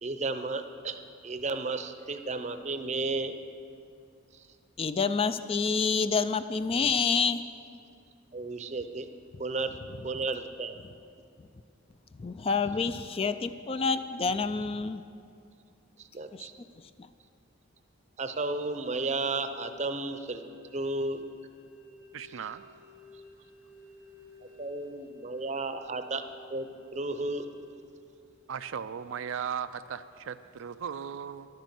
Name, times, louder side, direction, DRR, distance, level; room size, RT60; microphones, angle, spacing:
voice 1, 0.0-3.3 4.3-4.5 8.3-9.1 9.4-10.7 16.0-16.5 18.2-20.4 20.7-21.2 24.6-26.2 26.5-27.5, right 3 dB, 35° right, 9 dB, 0.6 m, -33 dB
voice 2, 4.8-7.4 12.2-15.0 16.3-16.5 17.0-17.1, left 5 dB, 30° left, 12 dB, 0.3 m, -28 dB
sound 1, 18.7-27.8, left 2 dB, 85° left, 3.8 m, -53 dB
voice 3, 22.1-22.6 28.5-31.5, right 7 dB, 75° right, 12 dB, 0.4 m, -37 dB
11.0 x 9.3 x 7.4 m, 2.4 s
head